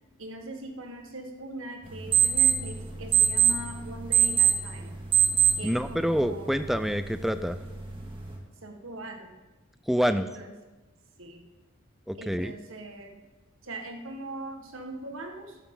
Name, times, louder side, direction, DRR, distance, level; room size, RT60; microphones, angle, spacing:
voice 1, 0.2-4.9 5.6-6.5 8.6-9.3 10.1-10.5 11.2-11.4 12.2-13.2 13.6-15.6, right 1 dB, 75° right, 4 dB, 1.6 m, -41 dB
sound 1, 1.8-8.4, right 8 dB, 25° right, 2.0 m, -26 dB
voice 2, 5.6-7.6 9.9-10.4 12.1-12.6, equal, ahead, 11 dB, 0.4 m, -27 dB
13.0 x 11.5 x 3.9 m, 1.1 s
head